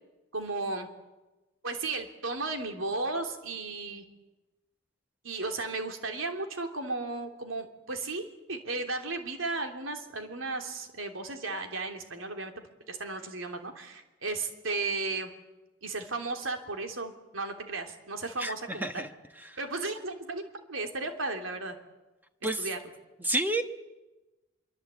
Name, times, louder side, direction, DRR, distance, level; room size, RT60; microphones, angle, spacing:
voice 1, 0.3-0.9 1.6-4.0 5.2-12.5 12.9-15.3 15.8-19.0 19.6-21.8 22.6-22.8, right 3 dB, 85° right, 5 dB, 3.2 m, -35 dB
voice 2, 18.4-19.1 19.4-19.6 22.4-22.7 23.2-23.6, right 1 dB, 10° right, 6 dB, 1.2 m, -30 dB
25.0 x 23.5 x 8.3 m, 1.1 s
head